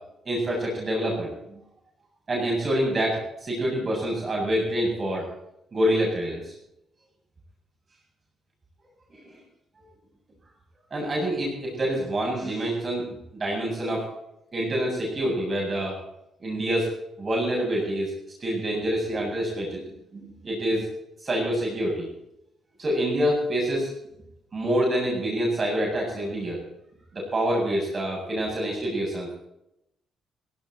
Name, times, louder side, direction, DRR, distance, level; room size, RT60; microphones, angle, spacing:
voice 1, 0.2-1.3 2.3-5.2 5.7-6.5 9.1-9.3 10.9-13.1 13.3-14.1 14.5-16.0 16.4-16.9 17.2-18.1 18.4-19.8 20.1-20.9 21.2-22.1 22.8-23.9 24.5-26.6 27.1-29.3, equal, 35° right, -2 dB, 7.6 m, -26 dB
17.0 x 16.5 x 4.4 m, 0.83 s
cardioid pair, 90°, 0 cm